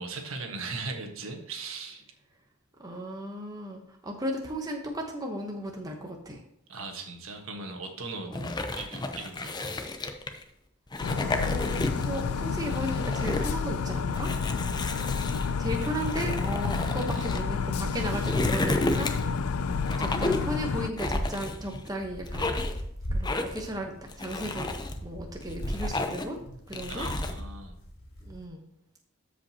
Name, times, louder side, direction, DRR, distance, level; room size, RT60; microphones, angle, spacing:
voice 1, 0.0-2.0 6.7-8.3 8.7-9.8 17.1-17.3 26.9-27.8, right 3 dB, 70° right, 3 dB, 1.4 m, -38 dB
voice 2, 2.8-6.4 8.3-8.5 11.3-14.3 15.6-19.4 20.0-22.6 23.1-24.7 25.0-26.4 26.7-27.1 28.2-28.6, equal, 15° right, 1 dB, 1.0 m, -35 dB
sound 1, 8.3-10.4 10.9-12.2 12.6-13.5 14.1-17.4 17.9-19.4 19.9-20.5 21.0-21.9 22.2-22.8 23.2-23.7 24.1-24.9 25.4-26.4 26.7-27.4, left 2 dB, 20° left, 0.7 m, -32 dB
sound 2, 11.0-20.9, left 5 dB, 90° left, 0.4 m, -30 dB
sound 3, 11.8-12.1 13.3-13.4 14.2-28.5, equal, 65° left, 2.8 m, -39 dB
13.5 x 5.1 x 2.9 m, 0.77 s
head